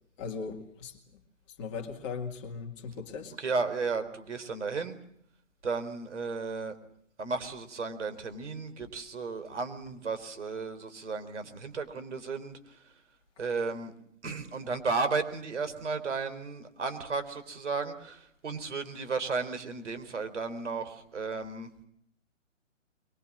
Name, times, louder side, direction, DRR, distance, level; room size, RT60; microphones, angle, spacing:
voice 1, 0.2-1.0 1.6-3.3, left 5 dB, 25° left, 2.3 m, -38 dB
voice 2, 3.4-5.0 5.6-6.8 7.2-13.0 13.4-13.9 14.2-21.7, right 4 dB, 65° right, 4.2 m, -34 dB
24.5 x 22.5 x 7.5 m
hypercardioid pair, 155°, 38 cm